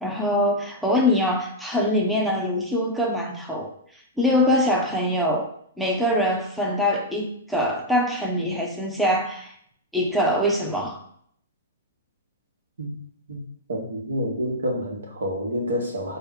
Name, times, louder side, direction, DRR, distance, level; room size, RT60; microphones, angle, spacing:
voice 1, 0.0-3.7 4.2-5.5 5.8-9.5 9.9-11.0, left 1 dB, ahead, -1 dB, 0.5 m, -23 dB
voice 2, 13.7-16.2, equal, 75° right, 1 dB, 1.0 m, -28 dB
4.4 x 2.2 x 3.5 m, 0.65 s
hypercardioid pair, 130°, 0 cm